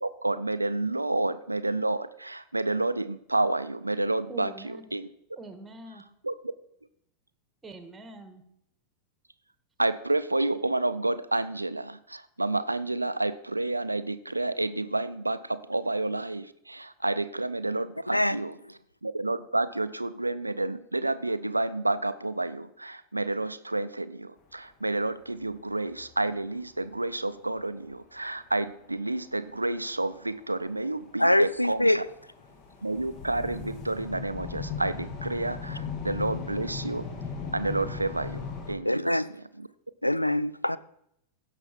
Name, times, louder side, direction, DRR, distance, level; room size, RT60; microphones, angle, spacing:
voice 1, 0.0-5.1 6.2-6.3 9.8-18.5 19.0-32.0 32.8-37.1 37.5-39.2 39.6-39.7, right 2 dB, 85° right, 0.4 m, -30 dB
voice 2, 4.3-5.0 5.4-6.0 7.6-8.4, right 2 dB, 10° right, 1.5 m, -44 dB
sound 1, 25.4-25.5 25.7-26.4 26.8-26.9 27.6-27.7 28.5-28.9 29.5-29.6 30.0-38.7, left 5 dB, 35° left, 1.5 m, -38 dB
voice 3, 31.2-32.0 38.8-39.3 40.0-40.8, left 1 dB, 85° left, 0.3 m, -23 dB
16.0 x 5.7 x 4.3 m
figure-of-eight pair, 90°, 0 cm